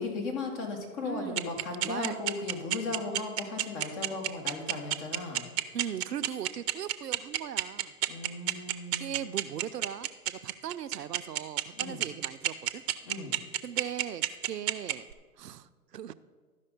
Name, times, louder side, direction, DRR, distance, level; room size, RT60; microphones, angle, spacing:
voice 1, 0.0-5.4 8.1-9.3 11.8-12.0 13.0-13.3, left 3 dB, 45° left, 2 dB, 2.1 m, -36 dB
voice 2, 1.0-2.1 5.7-7.9 9.0-12.8 13.6-15.1 15.4-16.1, right 10 dB, 90° right, 13 dB, 0.6 m, -39 dB
sound 1, 1.4-15.1, right 14 dB, 45° right, 0.6 m, -28 dB
12.5 x 5.3 x 5.2 m, 1.5 s
hypercardioid pair, 115°, 46 cm